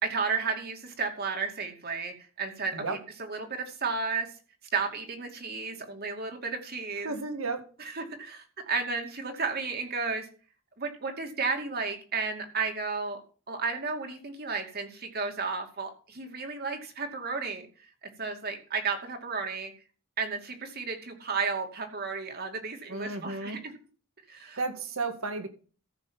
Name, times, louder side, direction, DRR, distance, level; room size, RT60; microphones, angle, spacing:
voice 1, 0.0-4.3 4.7-7.1 7.8-10.3 10.8-13.2 13.5-17.7 18.0-19.7 20.2-23.8 24.3-24.6, right 4 dB, 45° right, 4 dB, 2.5 m, -33 dB
voice 2, 7.0-7.6 22.9-23.6 24.6-25.5, right 3 dB, 70° right, 7 dB, 2.0 m, -33 dB
14.5 x 6.2 x 5.6 m, 0.38 s
head